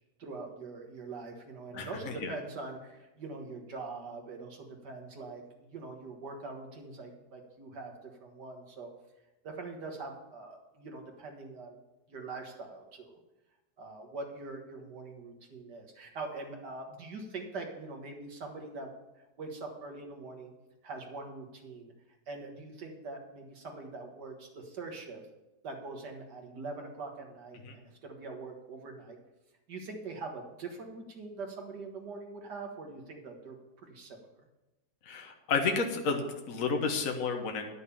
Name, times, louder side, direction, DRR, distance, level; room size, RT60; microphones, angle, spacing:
voice 1, 0.2-8.9 9.4-11.8 12.1-13.2 13.8-18.9 19.4-20.5 20.8-21.9 22.3-25.2 25.6-29.2 29.7-34.2, right 3 dB, 85° right, 2 dB, 2.3 m, -43 dB
voice 2, 35.1-37.7, left 4 dB, 55° left, 3 dB, 1.5 m, -31 dB
10.5 x 6.4 x 7.0 m, 1.0 s
omnidirectional pair, 1.8 m